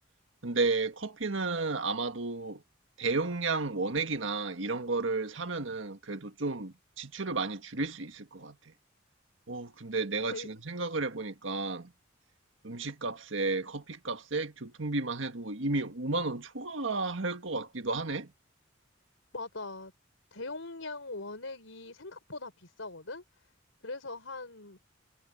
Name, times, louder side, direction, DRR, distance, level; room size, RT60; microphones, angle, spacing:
voice 1, 0.4-2.6 3.0-8.7 9.5-11.9 12.6-18.3, right 3 dB, 75° right, 1.7 m, -33 dB
voice 2, 19.3-19.9 20.3-23.2 23.8-24.8, left 3 dB, 85° left, 4.5 m, -41 dB
head